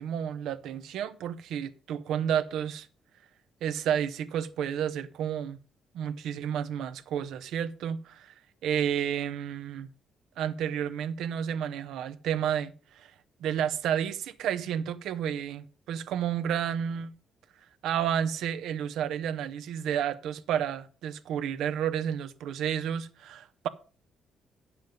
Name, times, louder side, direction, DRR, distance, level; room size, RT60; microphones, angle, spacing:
voice 1, 0.0-2.9 3.6-5.6 5.9-8.3 8.6-9.9 10.4-13.1 13.4-17.1 17.8-23.7, right 9 dB, 80° right, 0.7 m, -31 dB
9.4 x 7.4 x 5.1 m
cardioid pair, 90°, 0 cm